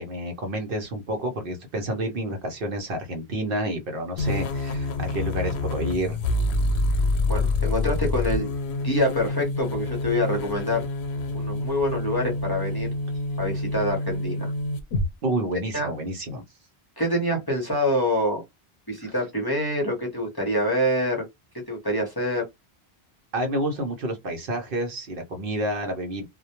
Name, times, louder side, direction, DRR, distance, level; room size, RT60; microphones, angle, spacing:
voice 1, 0.0-6.2 15.2-16.4 19.0-19.1 23.3-26.2, right 1 dB, 60° right, 0.8 m, -29 dB
sound 1, 4.2-15.1, left 2 dB, 90° left, 0.9 m, -27 dB
voice 2, 7.3-8.5 8.8-10.8 11.3-12.9 13.4-14.5 15.7-15.9 17.0-18.4 18.9-21.2 21.7-22.4, left 1 dB, 25° left, 0.6 m, -26 dB
2.1 x 2.1 x 2.8 m
omnidirectional pair, 1.1 m